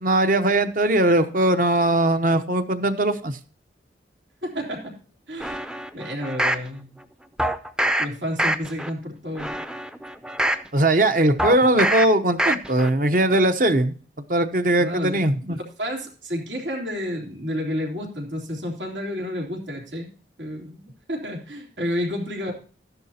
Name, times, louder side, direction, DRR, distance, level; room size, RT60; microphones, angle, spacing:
voice 1, 0.0-3.4 10.7-13.9 14.3-15.6, right 1 dB, 50° right, 9 dB, 0.9 m, -20 dB
voice 2, 4.4-4.9 5.3-5.7 5.9-6.9 8.0-9.5 14.8-15.2 15.8-20.1 20.4-22.5, equal, 90° right, 0 dB, 3.4 m, -30 dB
sound 1, 5.4-6.7 7.4-8.1 8.4-8.9 9.3-10.7 11.4-12.1 12.4-12.9 13.3-13.4, right 1 dB, 5° right, 0.4 m, -24 dB
13.0 x 10.5 x 2.8 m, 0.41 s
head